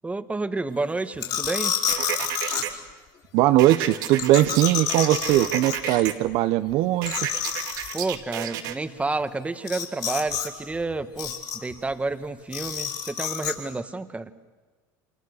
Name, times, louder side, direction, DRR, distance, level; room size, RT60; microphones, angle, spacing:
voice 1, 0.0-1.8 7.9-14.3, right 3 dB, 15° right, 10 dB, 1.3 m, -30 dB
sound 1, 1.2-2.6 4.2-6.0 6.3-6.4 6.7-6.8 7.1-8.0 9.7-10.5 10.7-11.7 12.5-13.5, left 8 dB, 50° left, 5.5 m, -29 dB
sound 2, 1.9-2.7 3.6-6.1 7.0-8.7, right 11 dB, 85° right, 2.0 m, -31 dB
voice 2, 3.3-7.1, right 15 dB, 65° right, 11 dB, 0.9 m, -20 dB
29.5 x 26.5 x 6.6 m, 1.4 s
supercardioid pair, 100°, 10 cm